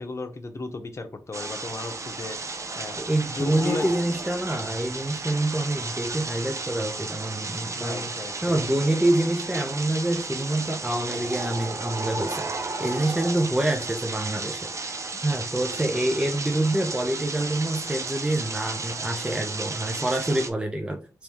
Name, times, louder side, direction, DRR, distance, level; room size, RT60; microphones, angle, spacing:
voice 1, 0.0-2.4 2.7-3.0 3.3-3.9 7.7-8.6 15.1-15.2, left 3 dB, 45° left, 6 dB, 0.9 m, -34 dB
sound 1, 1.3-20.5, right 3 dB, 50° right, 0.8 m, -33 dB
voice 2, 3.0-8.1 8.4-15.0 15.2-21.0, right 1 dB, 15° right, 2 dB, 0.7 m, -26 dB
3.4 x 3.2 x 4.4 m, 0.34 s
cardioid pair, 65°, 6 cm